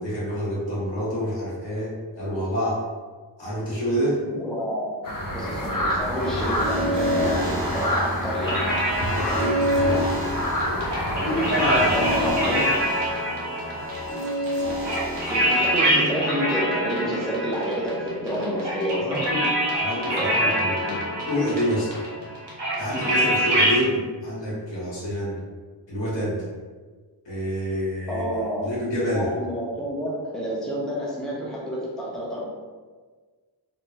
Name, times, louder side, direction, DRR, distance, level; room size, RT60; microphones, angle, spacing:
voice 1, 0.0-2.8 3.4-4.2 9.1-10.2 10.6-10.9 11.3-12.6 19.0-19.5 19.8-20.8 21.3-21.9 22.8-25.4 25.9-26.4 27.2-28.2 28.6-29.3, equal, 80° left, -9 dB, 1.3 m, -27 dB
voice 2, 4.3-8.6 9.8-10.0 11.1-12.7 13.7-13.9 14.8-19.5 20.1-20.6 20.8-21.0 28.1-28.7 29.1-32.4, equal, ahead, -5 dB, 0.6 m, -29 dB
sound 1, 5.0-12.3, equal, 50° left, 0.6 m, -27 dB
sound 2, 6.0-15.8, equal, 30° right, 0.8 m, -29 dB
sound 3, 8.4-23.8, equal, 70° right, 0.9 m, -26 dB
3.0 x 2.2 x 2.6 m, 1.4 s
wide cardioid pair, 75°, 43 cm